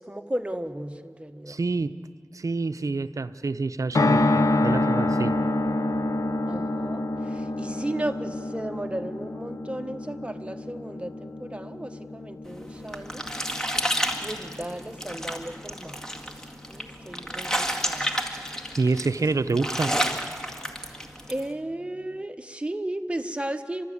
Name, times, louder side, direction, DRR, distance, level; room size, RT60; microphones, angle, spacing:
voice 1, 0.0-1.6 6.5-13.4 14.2-16.0 16.7-18.2 20.8-21.0 21.3-23.8, right 1 dB, 20° right, 7 dB, 1.2 m, -35 dB
voice 2, 1.5-2.0 2.3-5.4 18.8-20.0, right 3 dB, 65° right, 12 dB, 0.7 m, -27 dB
sound 1, 3.9-16.2 16.5-16.6 16.8-16.9, left 2 dB, 70° left, 0.8 m, -28 dB
sound 2, 12.5-21.4, equal, 10° left, 2.0 m, -30 dB
30.0 x 12.5 x 8.5 m, 2.2 s
wide cardioid pair, 50°, 6 cm